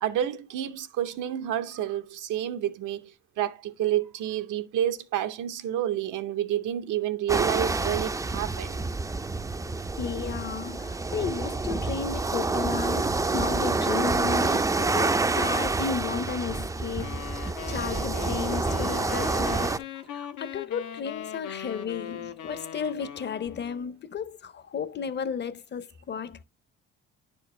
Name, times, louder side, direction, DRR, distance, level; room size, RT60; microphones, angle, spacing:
voice 1, 0.0-8.9 20.2-20.3, right 11 dB, 85° right, 0.9 m, -29 dB
sound 1, 7.3-19.8, right 3 dB, 10° right, 0.3 m, -28 dB
voice 2, 10.0-26.4, left 6 dB, 35° left, 0.6 m, -34 dB
sound 2, 17.0-24.0, left 9 dB, 80° left, 0.8 m, -39 dB
10.5 x 4.5 x 3.1 m
cardioid pair, 90°, 30 cm